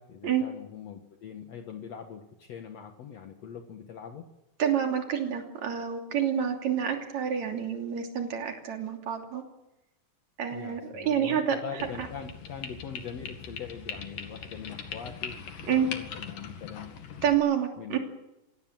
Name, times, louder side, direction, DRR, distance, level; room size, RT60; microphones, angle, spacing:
voice 1, 0.0-4.3 10.5-16.9 17.8-18.0, left 7 dB, 55° left, 5 dB, 2.4 m, -42 dB
voice 2, 4.6-9.4 10.4-12.1 15.7-15.9 17.2-18.0, right 8 dB, 60° right, 3 dB, 4.2 m, -28 dB
sound 1, 11.8-17.4, left 6 dB, 80° left, 3.7 m, -41 dB
25.5 x 18.0 x 7.8 m, 0.93 s
omnidirectional pair, 3.8 m